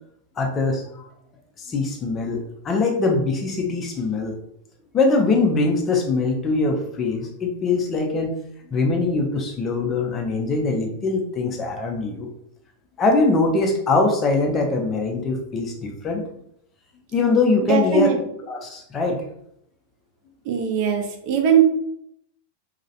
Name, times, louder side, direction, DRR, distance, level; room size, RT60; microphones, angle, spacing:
voice 1, 0.4-0.8 1.7-4.3 4.9-8.4 8.7-12.3 13.0-16.2 17.1-18.1 18.5-19.2, left 3 dB, 25° left, 2 dB, 0.5 m, -22 dB
voice 2, 17.7-18.2 20.4-21.6, right 8 dB, 45° right, 3 dB, 0.5 m, -20 dB
2.3 x 2.0 x 2.7 m, 0.73 s
figure-of-eight pair, 90°, 0 cm